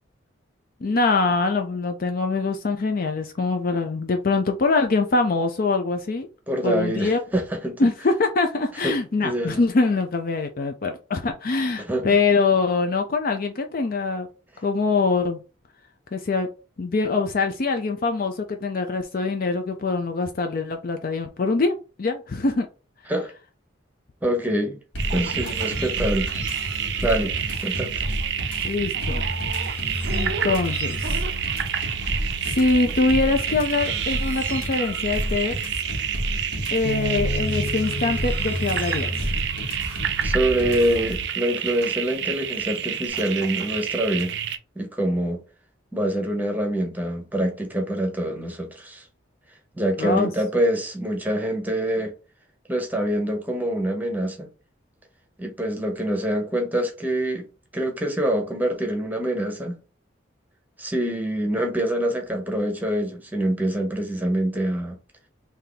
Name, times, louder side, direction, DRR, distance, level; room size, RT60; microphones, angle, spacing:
voice 1, 0.8-6.3 6.6-7.2 7.8-14.3 14.6-15.4 16.1-16.5 16.8-22.7 28.6-29.2 30.1-31.2 32.0-32.2 32.5-35.5 36.7-39.4 50.0-50.3, left 3 dB, 45° left, 0.4 m, -23 dB
voice 2, 6.5-7.9 8.8-9.0 9.2-9.6 11.9-12.2 23.1-23.3 24.2-24.8 25.1-26.3 27.0-28.0 40.2-44.4 44.8-45.4 45.9-49.0 49.8-52.1 52.7-54.5 55.4-57.5 57.7-59.8 60.8-65.0, right 1 dB, 10° right, 0.8 m, -25 dB
sound 1, 24.9-41.2, equal, 80° left, 1.6 m, -30 dB
sound 2, 25.0-44.6, right 9 dB, 60° right, 0.4 m, -29 dB
Bass guitar, 36.8-41.3 41.9-43.1, left 1 dB, 65° left, 1.0 m, -36 dB
3.5 x 2.8 x 3.9 m
head